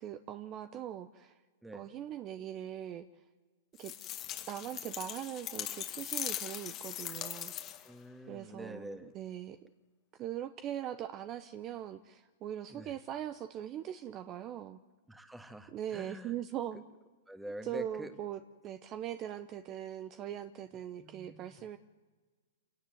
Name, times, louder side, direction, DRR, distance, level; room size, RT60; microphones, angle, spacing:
voice 1, 0.0-1.4 1.7-3.1 3.8-3.9 4.5-7.9 8.3-9.6 10.1-14.8 15.7-16.8 17.6-21.8, right 11 dB, 30° right, 12 dB, 0.8 m, -41 dB
sound 1, 3.8-8.0, left 11 dB, 30° left, 1.5 m, -40 dB
voice 2, 7.8-9.1 12.7-13.0 15.1-16.3 17.3-18.1 21.0-21.5, right 1 dB, 5° right, 9 dB, 1.8 m, -46 dB
27.0 x 17.5 x 7.9 m, 1.4 s
hypercardioid pair, 135°, 0 cm